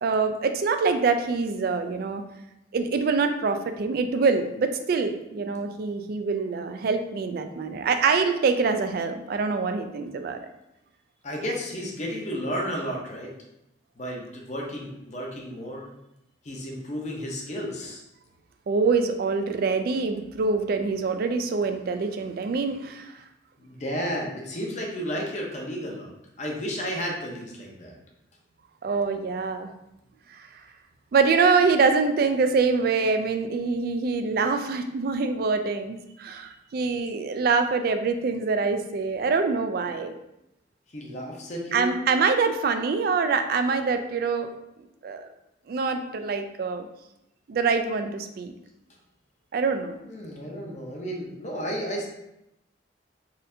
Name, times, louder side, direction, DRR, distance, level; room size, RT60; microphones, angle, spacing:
voice 1, 0.0-2.2 2.7-10.4 18.7-23.1 28.8-29.7 30.4-30.5 31.1-40.1 41.7-44.5 45.0-45.2 45.7-46.9 47.5-48.5 49.5-50.0, right 4 dB, 50° right, 7 dB, 0.3 m, -25 dB
voice 2, 11.2-13.3 14.0-15.9 16.4-18.0 23.6-26.1 26.4-27.9 40.9-42.0 50.1-52.1, equal, 40° left, -1 dB, 0.7 m, -32 dB
4.1 x 2.6 x 2.6 m, 0.86 s
head